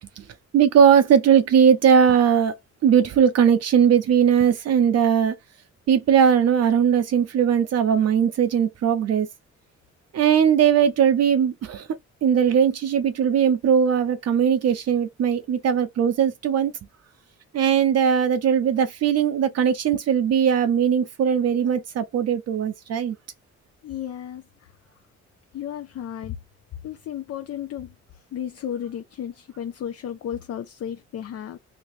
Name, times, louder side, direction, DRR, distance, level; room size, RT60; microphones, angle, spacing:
voice 1, 0.5-2.6 2.8-5.3 5.9-9.3 10.1-11.9 12.2-16.7 17.5-23.2, right 8 dB, 60° right, 0.5 m, -19 dB
voice 2, 23.8-24.7 25.5-26.4 26.8-31.6, left 9 dB, 55° left, 0.5 m, -34 dB
3.3 x 2.7 x 2.6 m
cardioid pair, 100°, 29 cm